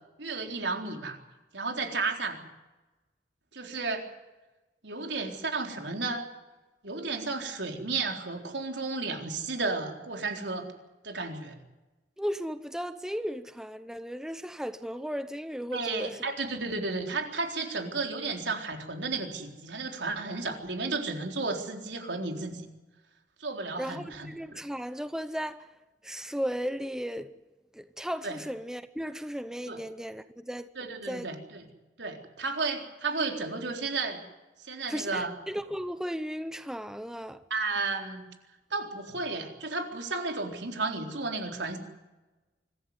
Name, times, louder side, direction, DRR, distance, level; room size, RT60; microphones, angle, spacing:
voice 1, 0.2-1.2 1.5-2.4 3.5-4.1 4.8-6.2 6.8-10.7 11.0-11.6 15.7-22.7 23.4-24.3 28.2-28.4 29.7-29.8 30.8-31.7 32.0-34.2 34.6-35.3 37.5-38.2 38.7-41.8, right 3 dB, 80° right, 4.0 m, -33 dB
voice 2, 12.2-16.2 23.8-25.7 26.0-27.3 27.7-30.7 31.1-31.3 34.9-37.4, equal, 5° right, 0.7 m, -35 dB
25.0 x 15.0 x 9.6 m
head